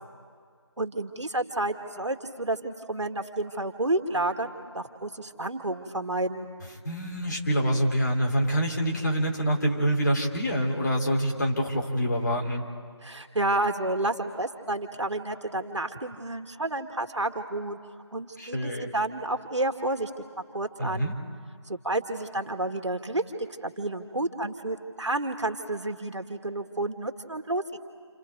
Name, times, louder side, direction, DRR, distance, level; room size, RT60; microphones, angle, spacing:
voice 1, 0.8-6.5 13.0-17.8 18.1-20.1 20.5-21.1 21.7-27.8, right 2 dB, 75° right, 7 dB, 2.1 m, -30 dB
voice 2, 6.8-12.6 18.4-18.9 20.8-21.1, equal, 40° left, -1 dB, 3.1 m, -26 dB
29.0 x 28.5 x 4.6 m, 2.1 s
figure-of-eight pair, 165°, 15 cm